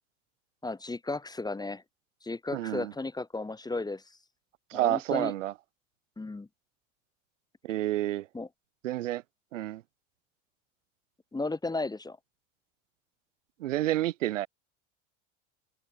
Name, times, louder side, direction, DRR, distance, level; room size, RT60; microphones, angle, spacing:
voice 1, 0.6-1.8 2.2-4.2 4.7-5.3 6.2-6.5 8.3-8.5 11.3-12.2, left 3 dB, 10° left, 1.4 m, -34 dB
voice 2, 2.5-2.9 4.7-5.5 7.6-8.2 8.8-9.2 9.5-9.8 13.6-14.5, right 14 dB, 90° right, 1.5 m, -29 dB
hypercardioid pair, 95°, 36 cm